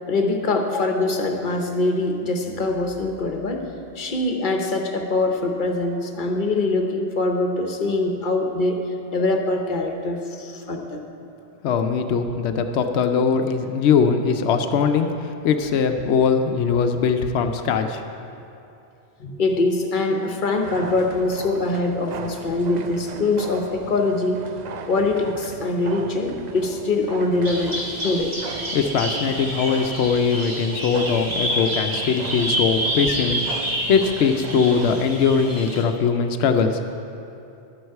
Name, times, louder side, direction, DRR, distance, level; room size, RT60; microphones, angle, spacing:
voice 1, 0.1-3.6 3.9-8.8 9.1-11.0 19.2-24.4 24.9-28.3, left 2 dB, 50° left, 4 dB, 1.0 m, -23 dB
voice 2, 11.6-18.0 28.7-36.8, left 6 dB, 80° left, 6 dB, 0.9 m, -21 dB
sound 1, 20.6-35.9, right 6 dB, 50° right, 0.5 m, -38 dB
Bird vocalization bird call bird song, 27.4-35.8, equal, 35° right, 1.5 m, -28 dB
12.0 x 9.4 x 4.7 m, 2.8 s
omnidirectional pair, 1.1 m